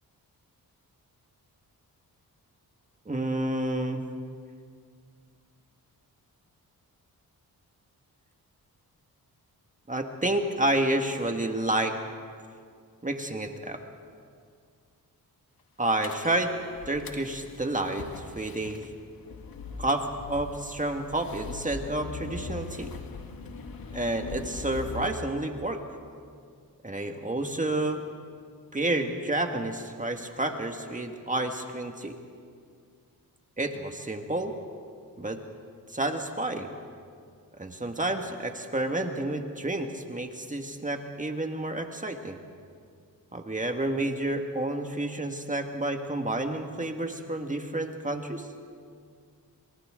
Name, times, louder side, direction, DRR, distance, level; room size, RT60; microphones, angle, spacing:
voice 1, 3.1-4.0 9.9-11.9 13.0-13.8 15.8-16.5 16.9-18.8 19.8-22.9 23.9-25.8 26.8-28.0 28.7-32.2 33.6-34.5 35.2-35.4 35.9-36.7 37.6-42.4 43.3-48.5, right 1 dB, 20° right, 4 dB, 1.8 m, -30 dB
sound 1, 16.0-25.1, left 4 dB, 70° left, 2.0 m, -41 dB
29.5 x 27.0 x 3.8 m, 2.2 s
cardioid pair, 75°, 37 cm